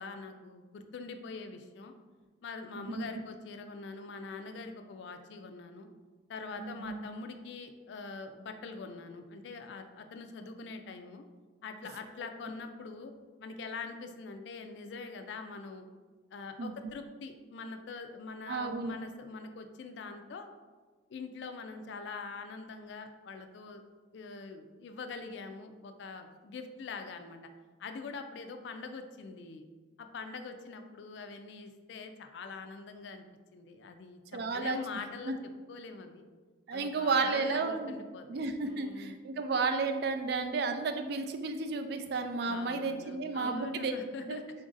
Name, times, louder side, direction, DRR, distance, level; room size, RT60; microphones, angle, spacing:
voice 1, 0.0-1.9 2.4-5.9 6.3-11.2 11.6-13.1 13.4-15.9 16.3-20.5 21.1-23.8 24.1-27.4 27.8-29.6 30.0-33.3 33.5-35.4 35.7-36.2 36.7-39.2 42.4-44.4, left 4 dB, 65° left, 6 dB, 0.3 m, -44 dB
voice 2, 6.6-7.0 16.6-16.7 18.5-18.9 34.3-34.8 35.3-35.4 36.7-37.9 38.3-43.9 44.2-44.4, right 4 dB, 55° right, 7 dB, 0.3 m, -32 dB
3.9 x 2.5 x 3.8 m, 1.4 s
head